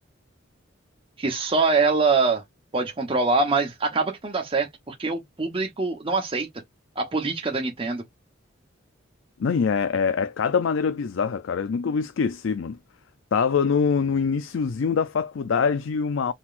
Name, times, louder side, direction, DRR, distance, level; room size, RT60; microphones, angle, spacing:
voice 1, 1.2-2.4 2.7-6.5 7.0-8.0, right 3 dB, 30° right, 0.9 m, -24 dB
voice 2, 9.4-12.8 13.3-16.3, left 6 dB, 75° left, 0.4 m, -24 dB
4.2 x 3.9 x 2.5 m
head